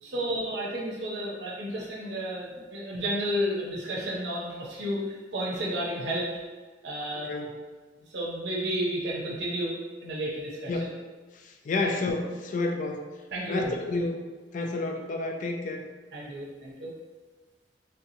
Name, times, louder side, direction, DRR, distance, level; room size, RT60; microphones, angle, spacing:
voice 1, 0.0-6.3 6.8-7.3 8.1-9.7 10.0-10.9 11.8-11.9 13.3-13.8 16.1-16.9, equal, 65° right, -4 dB, 0.7 m, -32 dB
voice 2, 11.3-13.0 13.5-14.2 14.5-15.8, left 2 dB, 45° left, 3 dB, 0.3 m, -30 dB
3.5 x 2.8 x 2.6 m, 1.4 s
head